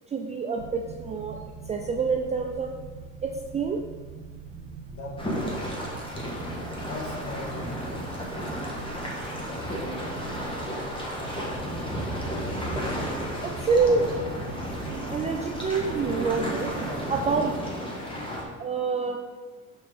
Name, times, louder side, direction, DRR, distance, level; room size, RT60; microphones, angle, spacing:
voice 1, 0.1-1.4 1.7-2.7 3.2-3.8 13.4-14.1 15.1-16.7 17.1-17.6 18.6-19.2, right 4 dB, 20° right, 2 dB, 0.4 m, -26 dB
sound 1, 0.6-17.4, right 5 dB, 80° right, 1.0 m, -43 dB
voice 2, 4.9-6.0 6.9-8.1, left 2 dB, 35° left, 0 dB, 1.7 m, -39 dB
sound 2, 5.2-18.4, equal, 15° left, 1.4 m, -33 dB
sound 3, 5.9-17.6, right 5 dB, 35° right, 0.8 m, -45 dB
6.1 x 4.4 x 5.0 m, 1.4 s
cardioid pair, 125°, 35 cm